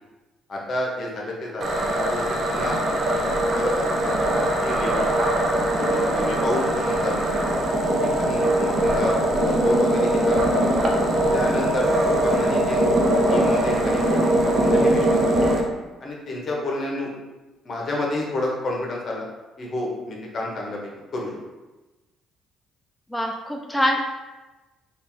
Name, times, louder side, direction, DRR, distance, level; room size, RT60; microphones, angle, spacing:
voice 1, 0.5-5.1 5.8-7.4 8.0-9.2 9.4-10.7 11.3-12.8 13.3-14.3 14.5-15.5 16.0-17.1 17.6-19.3 19.6-20.8 21.1-21.3, left 2 dB, 50° left, -2 dB, 1.1 m, -30 dB
sound 1, 1.6-15.6, right 1 dB, 45° right, 0.7 m, -21 dB
voice 2, 23.1-24.0, left 1 dB, 5° left, 1 dB, 0.4 m, -24 dB
4.0 x 2.5 x 3.5 m, 1.1 s
hypercardioid pair, 60°, 0 cm